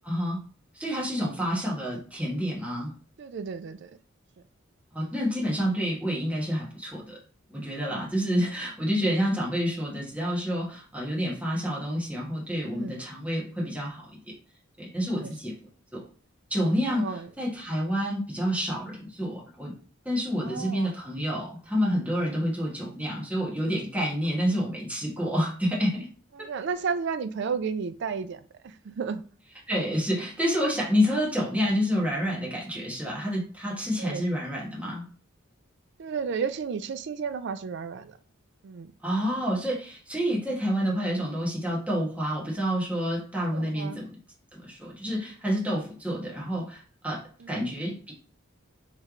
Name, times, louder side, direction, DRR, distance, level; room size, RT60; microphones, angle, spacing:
voice 1, 0.0-0.4 0.7-2.9 4.9-7.2 7.5-14.3 14.8-15.5 15.9-16.0 16.5-19.7 20.0-26.1 26.4-26.5 29.7-35.0 39.0-44.1 44.5-47.2 47.5-48.1, equal, 5° right, 1.2 m, -28 dB
voice 2, 3.2-4.0 7.9-8.1 8.5-8.6 12.6-13.0 15.1-15.3 16.9-17.3 20.4-20.9 26.3-29.2 34.0-34.2 36.0-38.2 38.6-38.9 43.5-44.0 47.4-47.7, right 5 dB, 55° right, 0.4 m, -33 dB
3.3 x 3.2 x 3.6 m
head